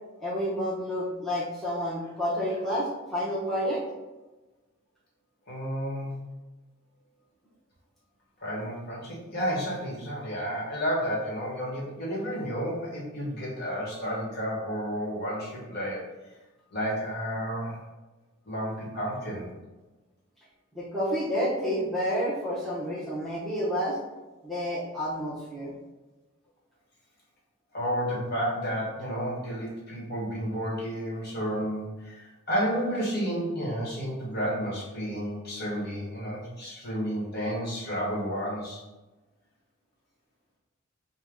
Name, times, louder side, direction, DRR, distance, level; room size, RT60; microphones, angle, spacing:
voice 1, 0.2-3.8 20.7-24.0 24.4-25.7, equal, ahead, -9 dB, 0.8 m, -29 dB
voice 2, 5.5-6.1 8.4-16.0 16.7-17.8 18.5-19.5 27.7-38.8, equal, 50° left, -5 dB, 1.3 m, -31 dB
4.5 x 2.2 x 3.6 m, 1.1 s
head